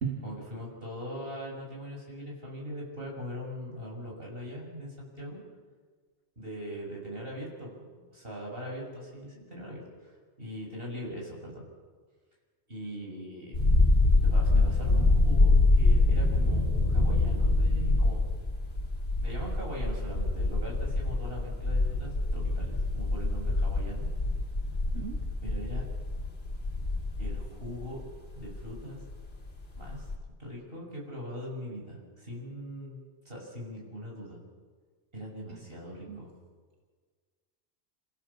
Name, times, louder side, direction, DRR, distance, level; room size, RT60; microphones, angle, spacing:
voice 1, 0.2-5.4 6.4-10.1 10.4-11.7 12.7-13.6 14.2-18.3 19.2-24.1 25.4-25.9 27.2-28.0 28.4-29.0 29.8-30.1 30.4-33.0 33.3-34.4 35.1-36.3, equal, 55° right, -2 dB, 7.0 m, -41 dB
sound 1, 13.5-29.3 29.6-30.2, left 2 dB, 60° left, 3.0 m, -25 dB
voice 2, 24.7-25.4 35.5-35.7 36.1-36.3, right 6 dB, 85° right, 1 dB, 2.3 m, -37 dB
29.0 x 15.5 x 7.2 m, 1.5 s
omnidirectional pair, 1.2 m